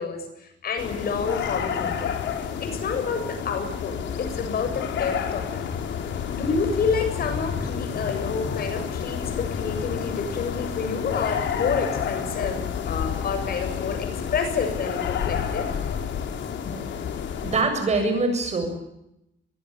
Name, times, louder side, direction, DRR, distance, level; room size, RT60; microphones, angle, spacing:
voice 1, 0.0-2.1 2.6-5.6 6.3-15.7 16.7-16.8, left 5 dB, 55° left, 7 dB, 7.4 m, -29 dB
sound 1, 0.8-17.6, left 7 dB, 85° left, 4.3 m, -30 dB
voice 2, 17.4-18.7, right 3 dB, 35° right, 7 dB, 7.2 m, -23 dB
24.0 x 23.0 x 8.5 m, 0.83 s
wide cardioid pair, 180°, 19 cm